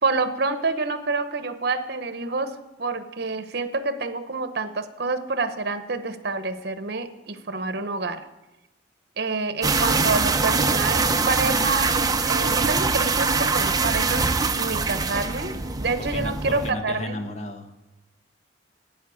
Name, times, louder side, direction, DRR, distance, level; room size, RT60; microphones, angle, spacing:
voice 1, 0.0-8.3 9.2-12.0 12.2-14.3 14.6-15.5 15.8-17.2, right 3 dB, 60° right, 10 dB, 1.0 m, -28 dB
sound 1, 9.6-16.7, right 4 dB, 20° right, 0.6 m, -23 dB
voice 2, 16.0-17.8, left 1 dB, 35° left, 6 dB, 1.3 m, -34 dB
11.0 x 8.8 x 8.5 m, 1.0 s
head